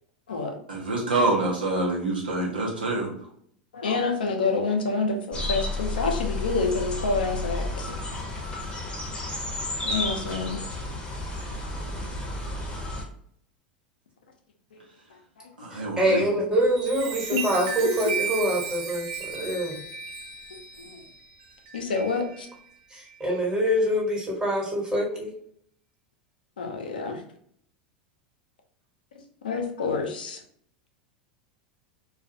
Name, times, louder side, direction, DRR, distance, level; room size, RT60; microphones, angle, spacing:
voice 1, 0.7-3.1 15.6-16.2, right 2 dB, 90° right, -3 dB, 0.9 m, -26 dB
voice 2, 3.7-7.9 9.8-10.6 14.7-14.8 17.3-17.5 17.8-17.9 20.8-21.0 21.7-22.5 26.6-27.2 29.4-30.4, left 4 dB, 85° left, 3 dB, 0.5 m, -28 dB
sound 1, 5.3-13.0, left 2 dB, 20° left, 0.8 m, -32 dB
voice 3, 15.7-19.8 22.9-25.3, equal, 15° right, -3 dB, 1.2 m, -25 dB
Chime, 16.5-22.5 23.1-23.3, right 5 dB, 55° right, 0.6 m, -35 dB
2.3 x 2.3 x 2.7 m, 0.64 s
hypercardioid pair, 90°, 5 cm